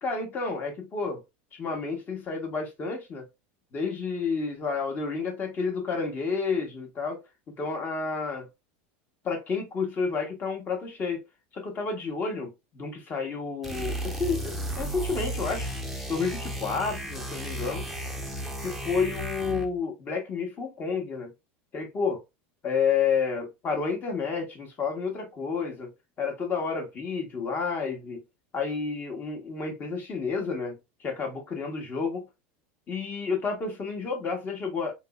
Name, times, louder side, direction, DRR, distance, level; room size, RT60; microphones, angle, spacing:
voice 1, 0.0-1.2 1.5-3.3 3.7-7.2 7.6-8.5 9.2-11.2 11.5-15.7 16.1-17.9 18.6-21.3 21.7-22.2 22.6-25.9 26.2-28.2 28.5-32.2 32.9-34.9, left 5 dB, 30° left, 1.3 m, -30 dB
sound 1, 13.6-19.8, right 1 dB, 5° right, 0.7 m, -34 dB
3.6 x 3.0 x 2.3 m
supercardioid pair, 130°, 6 cm